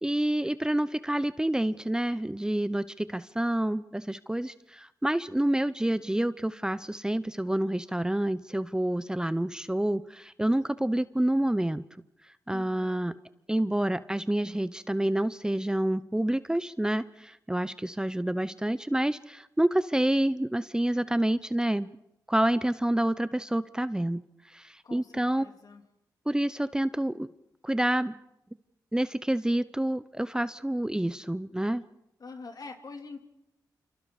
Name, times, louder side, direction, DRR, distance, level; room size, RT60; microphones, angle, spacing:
voice 1, 0.0-11.8 12.5-13.2 13.5-21.9 22.3-24.2 24.5-25.5 26.3-27.3 27.6-28.2 28.9-31.8, right 1 dB, 10° right, 15 dB, 0.7 m, -28 dB
voice 2, 12.5-13.0 24.8-25.8 32.2-33.2, left 4 dB, 60° left, 5 dB, 3.3 m, -45 dB
28.0 x 26.0 x 4.9 m, 0.84 s
cardioid pair, 55°, 7 cm